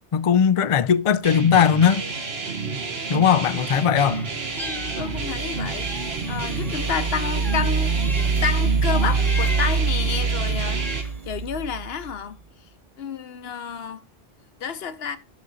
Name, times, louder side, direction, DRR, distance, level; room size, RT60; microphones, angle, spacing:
voice 1, 0.0-2.0 3.1-4.2, left 8 dB, 45° left, 0.4 m, -19 dB
sound 1, 1.2-11.0, right 4 dB, 75° right, 1.7 m, -30 dB
Meow, 4.0-5.4 5.8-8.5 8.9-9.9 10.5-11.3, left 1 dB, ahead, 0.7 m, -38 dB
voice 2, 4.6-7.9 8.4-12.4 13.0-14.0 14.6-15.2, left 7 dB, 70° left, 1.0 m, -30 dB
sound 2, 4.6-12.1, right 5 dB, 40° right, 0.7 m, -25 dB
11.0 x 6.2 x 3.9 m
omnidirectional pair, 1.1 m